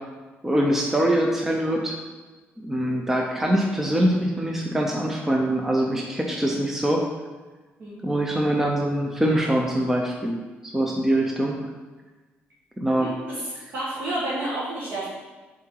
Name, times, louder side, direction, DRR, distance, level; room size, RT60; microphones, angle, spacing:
voice 1, 0.4-2.0 2.6-7.0 8.0-10.4 10.6-11.5 12.8-13.1, right 1 dB, 10° right, 0 dB, 0.5 m, -23 dB
voice 2, 13.0-15.1, right 1 dB, 55° right, -7 dB, 1.5 m, -30 dB
7.5 x 3.8 x 4.5 m, 1.3 s
cardioid pair, 165°, 4 cm